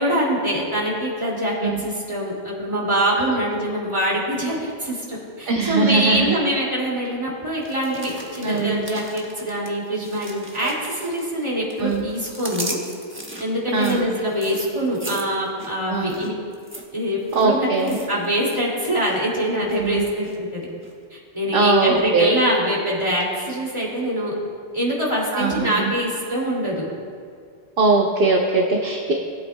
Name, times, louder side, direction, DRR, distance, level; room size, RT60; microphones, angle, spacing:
voice 1, 0.0-12.8 13.4-16.3 16.9-20.7 21.1-24.3 24.7-26.9, equal, 25° right, -5 dB, 2.5 m, -24 dB
voice 2, 5.5-6.3 8.4-8.8 10.6-10.7 11.8-12.0 13.7-14.1 15.9-16.2 17.3-18.0 19.6-20.0 21.5-22.3 25.3-25.9 27.8-29.1, right 3 dB, 60° right, 0 dB, 1.0 m, -21 dB
sound 1, 7.6-11.4 11.7-18.6 18.9-19.2 19.7-20.4 20.8-20.9, right 1 dB, 10° right, 1.0 m, -37 dB
20.0 x 8.3 x 2.2 m, 2.1 s
omnidirectional pair, 1.1 m